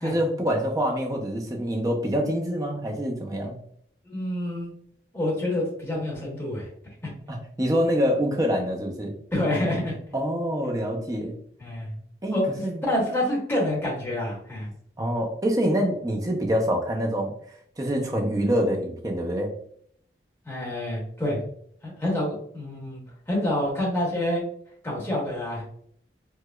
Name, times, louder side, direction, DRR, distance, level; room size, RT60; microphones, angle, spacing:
voice 1, 0.0-3.6 7.3-9.1 10.1-11.3 12.2-12.8 15.0-17.3 17.8-19.5, equal, 20° right, 1 dB, 0.5 m, -26 dB
voice 2, 4.1-4.7 5.1-6.7 7.0-7.1 9.3-10.0 11.6-11.9 12.3-12.4 12.8-14.7 20.4-21.4 21.8-23.0 23.3-24.4 24.8-25.6, left 1 dB, 15° left, -5 dB, 1.2 m, -27 dB
4.7 x 2.2 x 2.2 m, 0.64 s
head